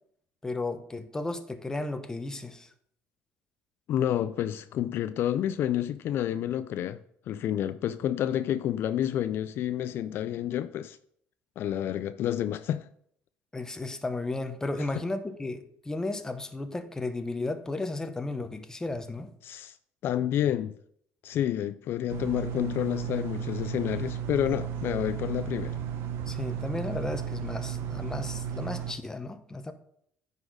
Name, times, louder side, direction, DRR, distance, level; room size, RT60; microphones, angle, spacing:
voice 1, 0.4-2.7 13.5-19.3 26.3-29.7, left 2 dB, 15° left, 0.8 m, -34 dB
voice 2, 3.9-7.0 7.3-11.0 11.6-12.9 14.9-15.0 19.4-19.8 20.0-20.8 21.2-25.8, left 11 dB, 60° left, 0.3 m, -29 dB
sound 1, 22.1-28.9, right 9 dB, 70° right, 0.8 m, -34 dB
9.6 x 4.1 x 5.0 m
cardioid pair, 110°, 4 cm